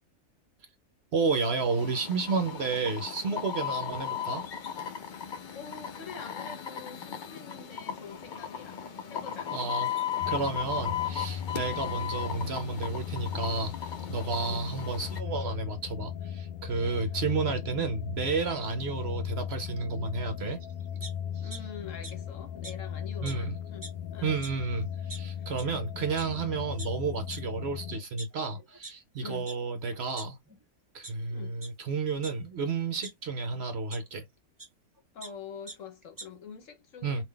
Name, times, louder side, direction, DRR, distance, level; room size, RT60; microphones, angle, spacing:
voice 1, 1.1-4.4 9.5-10.0 10.3-20.6 21.3-21.5 23.2-23.5 24.2-30.4 30.9-34.2 37.0-37.2, right 4 dB, 60° right, 0.8 m, -31 dB
sound 1, 1.6-15.2, left 9 dB, 50° left, 0.6 m, -36 dB
voice 2, 5.5-8.8 9.1-9.6 11.6-11.8 14.5-14.6 17.0-17.6 18.7-18.9 21.4-24.4 25.3-25.5 29.2-29.5 31.3-31.6 35.1-37.2, left 6 dB, 65° left, 1.2 m, -46 dB
sound 2, 10.2-28.0, left 9 dB, 85° left, 1.1 m, -38 dB
sound 3, 21.0-21.6 22.0-22.1 22.6-22.7 23.2-23.3 23.7-24.0 24.4-24.5 25.1-25.2 25.6-25.7 26.2-26.3 26.8-26.9 27.3-27.4 28.0-28.9 29.5-29.6 29.9-30.6 31.0-31.1 31.6-31.7 32.2-33.1 33.9-34.0 34.6-34.7 35.0-35.3 35.7-35.8 36.0-36.2, right 2 dB, 20° right, 0.8 m, -42 dB
3.7 x 2.6 x 3.3 m
omnidirectional pair, 1.5 m